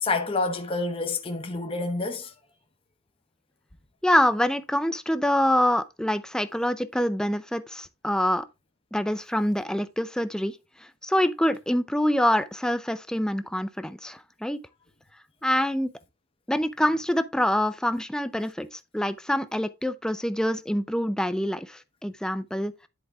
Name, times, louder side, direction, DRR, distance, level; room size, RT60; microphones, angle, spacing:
voice 1, 0.0-2.3, left 3 dB, 25° left, 0.8 m, -28 dB
voice 2, 4.0-8.4 8.9-10.6 11.0-14.6 15.4-15.9 16.5-22.9, left 1 dB, 5° left, 0.4 m, -25 dB
10.5 x 4.7 x 3.5 m
head